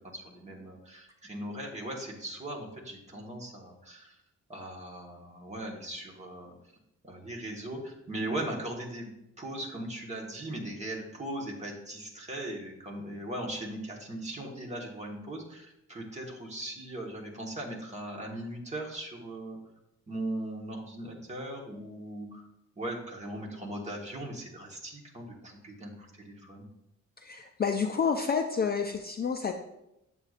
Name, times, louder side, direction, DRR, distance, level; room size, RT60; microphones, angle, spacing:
voice 1, 0.0-4.2 4.5-6.5 7.0-19.6 20.1-22.5 22.8-26.7, right 1 dB, 20° right, -1 dB, 1.2 m, -39 dB
voice 2, 27.2-29.5, left 6 dB, 30° left, 4 dB, 0.4 m, -29 dB
7.9 x 7.6 x 2.4 m, 0.86 s
wide cardioid pair, 160°, 31 cm